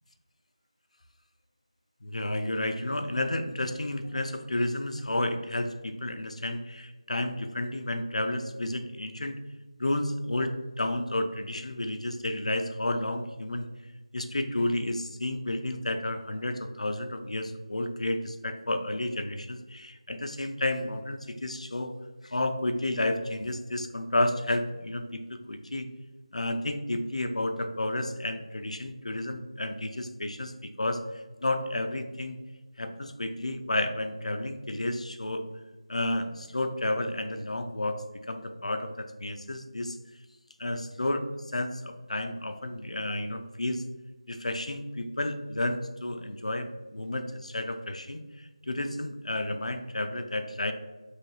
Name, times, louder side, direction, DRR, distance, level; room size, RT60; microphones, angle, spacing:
voice 1, 2.0-9.4 9.8-10.5 10.8-13.7 14.1-22.0 22.2-25.9 26.3-32.4 32.8-35.4 35.9-40.0 40.6-41.3 41.5-43.8 44.3-50.7, left 1 dB, 90° left, 7 dB, 0.4 m, -31 dB
3.1 x 2.7 x 2.8 m, 1.2 s
figure-of-eight pair, 175°, 3 cm